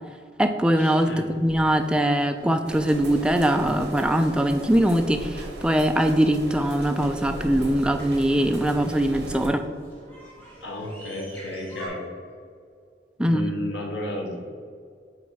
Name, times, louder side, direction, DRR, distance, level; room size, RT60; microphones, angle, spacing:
voice 1, 0.4-9.6 13.2-13.4, right 1 dB, 5° right, 6 dB, 0.3 m, -22 dB
sound 1, 0.7-11.9, equal, 10° left, 1.5 m, -47 dB
sound 2, 2.6-9.5, right 1 dB, 65° right, 1.3 m, -37 dB
voice 2, 10.6-12.1 13.2-14.4, left 1 dB, 85° left, 0 dB, 1.1 m, -32 dB
8.4 x 3.3 x 4.7 m, 2.2 s
head